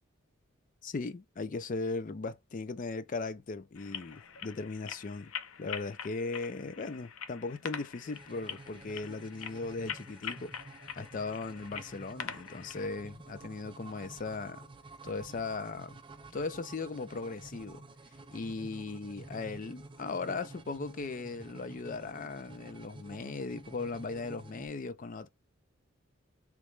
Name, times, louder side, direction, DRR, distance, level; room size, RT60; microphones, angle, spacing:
voice 1, 0.8-5.3 5.6-10.5 11.0-14.6 15.0-16.0 16.3-17.8 18.3-25.3, left 3 dB, 40° left, 0.4 m, -38 dB
sound 1, 3.7-12.9, left 8 dB, 90° left, 0.6 m, -44 dB
sound 2, 8.0-24.7, right 2 dB, 25° right, 0.5 m, -51 dB
3.2 x 3.0 x 3.2 m
head